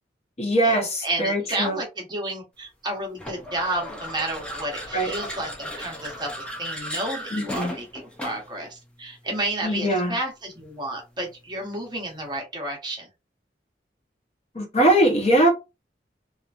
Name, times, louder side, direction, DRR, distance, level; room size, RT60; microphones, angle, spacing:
voice 1, 0.4-1.8 4.9-5.1 7.3-7.7 9.6-10.1 14.5-15.5, right 1 dB, 35° left, 0.8 m, -21 dB
voice 2, 1.0-13.1, right 1 dB, 25° right, 1.0 m, -31 dB
sound 1, 3.2-8.6, equal, 5° left, 0.6 m, -36 dB
2.9 x 2.5 x 2.4 m
head